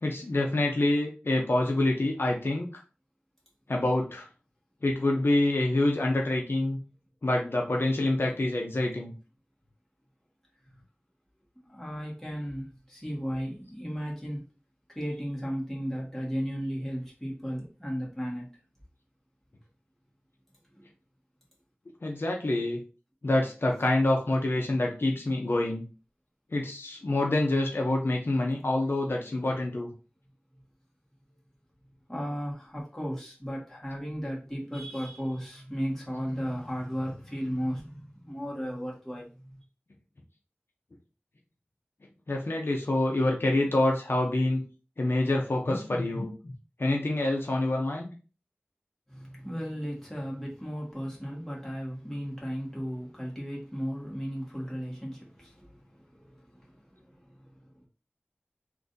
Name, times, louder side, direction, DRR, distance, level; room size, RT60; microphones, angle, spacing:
voice 1, 0.0-2.8 3.7-4.3 4.8-6.8 7.2-9.1 22.0-22.8 23.2-25.8 26.5-29.9 42.3-44.6 45.0-46.5 46.8-48.1, left 2 dB, 70° left, 0.6 m, -26 dB
voice 2, 11.7-14.5 14.9-18.5 20.7-20.9 32.1-39.6 49.1-57.9, equal, 10° left, 1.6 m, -35 dB
3.8 x 2.6 x 2.6 m
wide cardioid pair, 50°, 4 cm